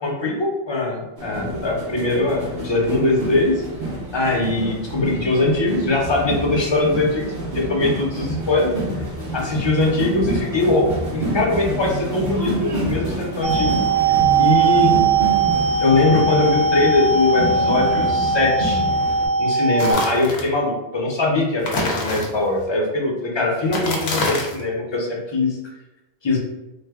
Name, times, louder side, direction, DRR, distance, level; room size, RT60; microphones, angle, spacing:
voice 1, 0.0-3.5 4.1-8.7 9.3-10.9 11.1-13.7 14.4-14.9 15.8-18.8 19.4-25.6 26.2-26.4, left 2 dB, 35° left, -2 dB, 0.5 m, -21 dB
sound 1, 1.2-19.3, equal, 50° right, 1.0 m, -28 dB
sound 2, 13.4-19.9, right 4 dB, 75° right, 0.8 m, -19 dB
sound 3, 19.8-20.5 21.6-22.6 23.6-24.7, left 2 dB, 75° left, 0.9 m, -26 dB
3.1 x 2.0 x 3.4 m, 0.99 s
omnidirectional pair, 1.1 m